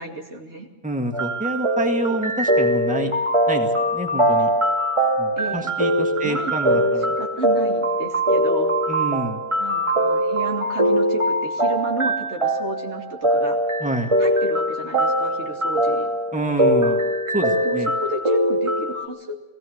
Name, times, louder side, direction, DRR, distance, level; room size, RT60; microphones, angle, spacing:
voice 1, 0.0-0.7 5.4-5.7 6.2-8.7 9.6-13.6 14.2-16.1 16.7-16.9 17.6-19.4, right 2 dB, 70° right, 1 dB, 2.7 m, -32 dB
voice 2, 0.8-3.1 3.5-4.5 5.2-7.2 8.9-9.4 13.8-14.1 16.3-17.0 17.3-17.9, right 1 dB, 5° right, 3 dB, 1.8 m, -27 dB
sound 1, 1.1-19.1, right 1 dB, 25° right, 1.6 m, -22 dB
20.0 x 16.5 x 7.8 m, 0.94 s
omnidirectional pair, 1.2 m